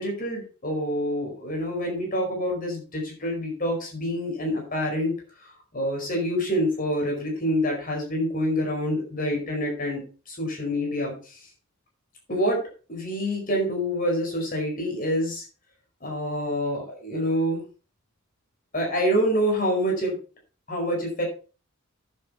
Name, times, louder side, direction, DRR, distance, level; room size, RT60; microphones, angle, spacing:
voice 1, 0.0-5.1 5.7-11.4 12.3-12.6 12.9-15.4 16.0-17.7 18.7-20.2 20.7-21.2, equal, 40° left, 0 dB, 5.2 m, -27 dB
10.0 x 8.2 x 5.8 m, 0.36 s
head